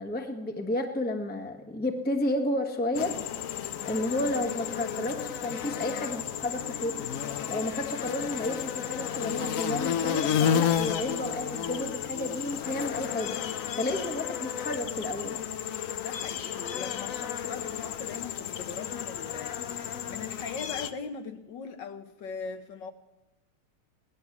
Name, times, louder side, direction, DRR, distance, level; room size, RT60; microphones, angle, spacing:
voice 1, 0.0-3.2 3.8-7.1 7.5-13.4 13.8-15.4, left 1 dB, 5° left, 0.8 m, -31 dB
sound 1, 2.9-20.9, left 9 dB, 90° left, 0.7 m, -32 dB
voice 2, 16.0-22.9, left 5 dB, 65° left, 1.5 m, -40 dB
17.5 x 11.5 x 7.2 m
omnidirectional pair, 2.3 m